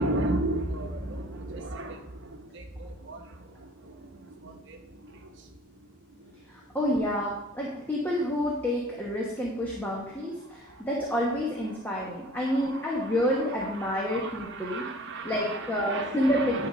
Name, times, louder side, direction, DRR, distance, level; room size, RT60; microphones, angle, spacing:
voice 1, 0.0-6.8 9.8-10.9 11.6-16.7, right 2 dB, 55° right, 4 dB, 1.1 m, -36 dB
voice 2, 6.5-14.8 15.2-16.7, equal, 10° left, -4 dB, 1.2 m, -29 dB
10.5 x 3.9 x 5.5 m, 0.95 s
head